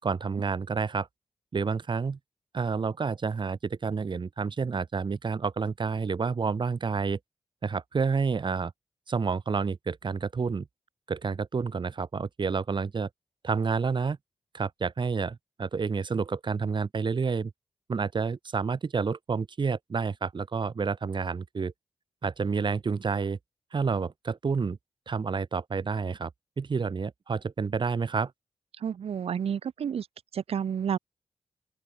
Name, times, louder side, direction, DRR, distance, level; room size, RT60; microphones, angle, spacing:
voice 1, 0.0-1.1 1.5-2.2 2.5-7.2 7.6-8.7 9.1-10.7 11.1-13.1 13.4-14.2 14.5-17.5 17.9-21.7 22.2-23.4 23.7-24.8 25.1-26.3 26.6-28.3, right 5 dB, 55° right, 4.2 m, -29 dB
voice 2, 28.7-30.1 30.3-31.0, right 8 dB, 85° right, 1.9 m, -30 dB
open air
wide cardioid pair, 90°, 10 cm